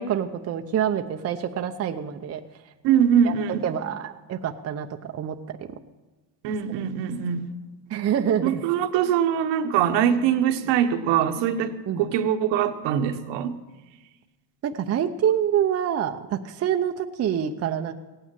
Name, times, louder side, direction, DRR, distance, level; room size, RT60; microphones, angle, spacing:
voice 1, 0.0-2.4 3.2-5.6 7.9-8.6 11.9-12.1 14.6-17.9, right 9 dB, 30° right, 5 dB, 0.7 m, -26 dB
voice 2, 2.8-3.6 6.4-7.4 8.4-13.5, right 9 dB, 70° right, 7 dB, 1.3 m, -23 dB
17.0 x 9.3 x 7.6 m, 1.2 s
cardioid pair, 125°, 46 cm